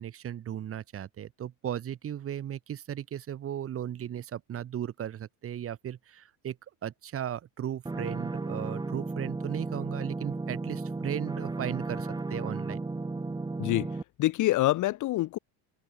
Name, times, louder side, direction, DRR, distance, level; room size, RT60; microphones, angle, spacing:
voice 1, 0.0-6.6 6.8-12.8, right 10 dB, 30° right, 3.6 m, -36 dB
sound 1, 7.9-14.0, right 3 dB, 10° right, 6.9 m, -34 dB
voice 2, 13.6-15.4, left 16 dB, 40° left, 2.0 m, -26 dB
open air
cardioid pair, 165°, 48 cm